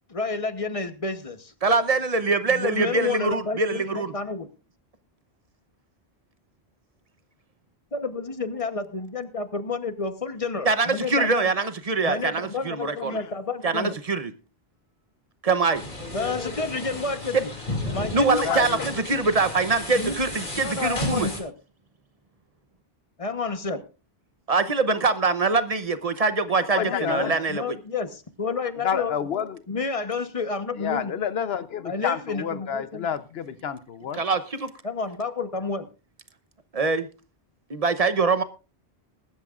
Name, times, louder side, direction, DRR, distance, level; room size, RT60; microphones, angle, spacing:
voice 1, 0.1-1.5 2.5-4.5 7.9-11.5 12.0-13.9 16.1-17.4 17.9-18.4 19.9-20.2 20.6-21.5 23.2-23.8 27.5-29.2 29.7-31.1 31.8-33.1 34.8-35.8, left 4 dB, 35° left, 1.1 m, -30 dB
voice 2, 1.6-4.1 10.6-13.2 13.6-14.3 15.4-15.8 17.3-17.4 18.1-21.3 24.5-27.8 34.1-34.7 36.7-37.1 37.7-38.4, right 4 dB, 40° right, 0.9 m, -23 dB
sound 1, 15.7-21.4, left 1 dB, 50° left, 2.9 m, -33 dB
voice 3, 18.4-18.9 26.7-27.4 28.8-29.6 30.8-34.2, left 7 dB, 70° left, 1.1 m, -29 dB
21.0 x 11.5 x 2.5 m
omnidirectional pair, 1.1 m